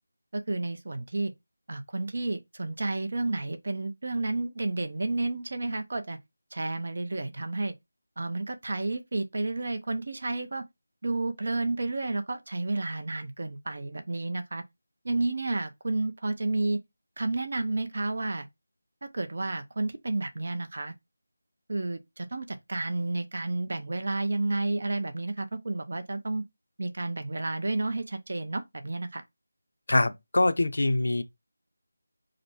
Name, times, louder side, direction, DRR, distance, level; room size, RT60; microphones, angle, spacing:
voice 1, 0.3-1.3 1.7-6.2 6.5-7.7 8.2-10.6 11.0-14.6 15.0-16.8 17.2-18.5 19.0-20.9 21.7-26.4 26.8-29.2, right 2 dB, 55° right, 0.8 m, -31 dB
voice 2, 29.9-31.2, left 2 dB, 70° left, 0.7 m, -24 dB
5.0 x 2.2 x 4.4 m
figure-of-eight pair, 170°, 0 cm